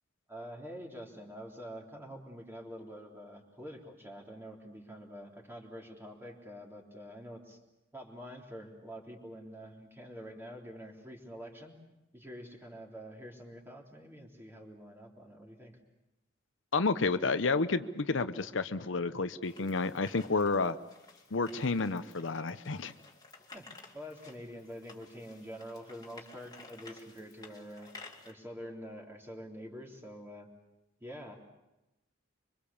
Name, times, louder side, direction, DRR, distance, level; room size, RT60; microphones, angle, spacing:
voice 1, 0.3-7.6 7.9-11.7 12.1-15.8 23.5-30.5 31.0-31.3, equal, 10° right, 0 dB, 3.6 m, -46 dB
voice 2, 16.7-20.8 21.3-22.9, left 3 dB, 75° left, 11 dB, 0.8 m, -30 dB
sound 1, 19.4-28.3, left 3 dB, 20° left, 2.6 m, -54 dB
25.5 x 24.5 x 7.1 m, 0.96 s
head